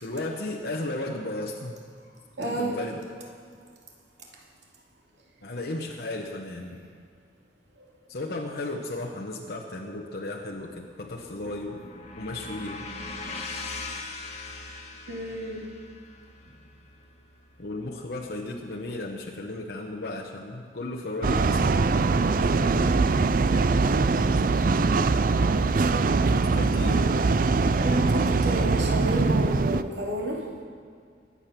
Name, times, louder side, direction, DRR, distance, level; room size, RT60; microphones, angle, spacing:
voice 1, 0.0-1.8 2.4-3.0 5.4-6.9 8.1-11.8 12.2-12.8 17.6-21.6 26.3-27.1, left 2 dB, 60° left, 0 dB, 1.1 m, -34 dB
voice 2, 2.4-2.7 7.8-7.9 15.1-15.7 27.8-30.5, right 1 dB, 75° right, -1 dB, 2.8 m, -31 dB
sound 1, 10.9-18.9, left 3 dB, 35° left, 1.7 m, -41 dB
sound 2, 21.2-29.8, right 3 dB, 50° right, 0.4 m, -22 dB
23.0 x 8.7 x 6.0 m, 2.1 s
head